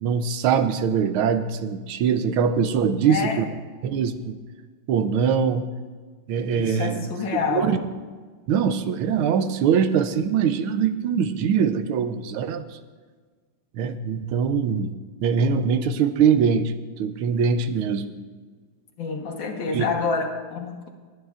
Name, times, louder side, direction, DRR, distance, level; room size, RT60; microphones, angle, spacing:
voice 1, 0.0-3.4 3.8-4.4 4.9-5.7 6.3-7.0 7.5-7.8 8.5-12.6 13.8-14.9 15.2-16.7 17.0-18.2 19.7-19.9, right 7 dB, 85° right, 10 dB, 1.6 m, -22 dB
voice 2, 2.8-3.4 6.5-7.8 19.0-20.9, left 5 dB, 65° left, 3 dB, 1.9 m, -28 dB
21.5 x 9.6 x 2.5 m, 1.5 s
omnidirectional pair, 2.3 m